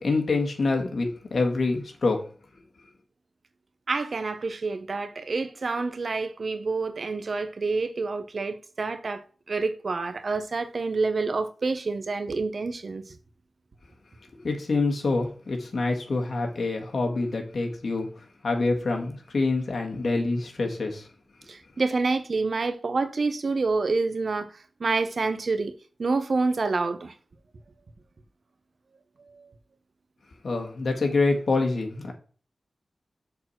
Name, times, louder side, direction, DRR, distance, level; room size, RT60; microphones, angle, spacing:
voice 1, 0.0-2.3 14.4-21.1 30.4-32.1, left 3 dB, 70° left, 1.7 m, -26 dB
voice 2, 3.9-13.0 21.5-24.5 24.8-25.7 26.0-27.1 29.2-29.5, right 3 dB, 65° right, 0.9 m, -28 dB
6.7 x 4.2 x 6.1 m
wide cardioid pair, 70°, 0 cm